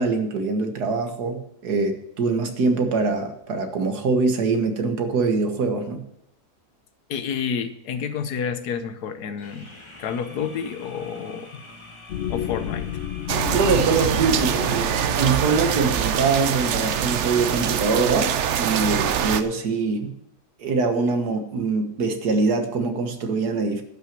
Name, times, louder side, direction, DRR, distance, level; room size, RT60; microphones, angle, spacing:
voice 1, 0.0-6.0 13.5-20.1 20.6-23.8, right 4 dB, 90° right, 6 dB, 1.9 m, -23 dB
voice 2, 7.1-9.7 10.0-11.6 12.3-12.9, left 7 dB, 90° left, 10 dB, 1.5 m, -29 dB
sound 1, 9.4-17.9, left 1 dB, 20° left, 1.4 m, -45 dB
sound 2, 12.1-16.6, left 10 dB, 65° left, 0.8 m, -33 dB
sound 3, 13.3-19.4, right 9 dB, 60° right, 0.8 m, -24 dB
11.5 x 6.0 x 7.4 m, 0.76 s
omnidirectional pair, 1.6 m